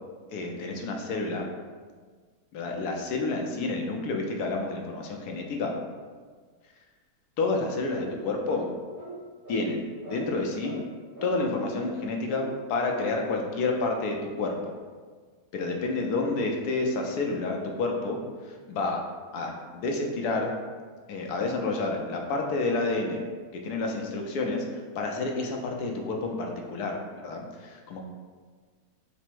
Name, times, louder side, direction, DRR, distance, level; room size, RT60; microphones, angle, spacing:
voice 1, 0.3-1.5 2.5-5.7 7.4-8.7 9.5-10.8 11.2-14.7 15.5-19.0 19.3-20.5 21.1-23.2 23.5-28.0, left 3 dB, 75° left, 1 dB, 1.1 m, -29 dB
sound 1, 7.9-8.1 8.4-8.6 8.9-9.1 9.4-9.6 10.0-10.2 10.6-10.8 11.1-11.3 11.7-11.9 12.3-12.5 12.8-13.0, right 2 dB, 75° right, 2.0 m, -41 dB
4.1 x 2.0 x 4.5 m, 1.5 s
omnidirectional pair, 1.7 m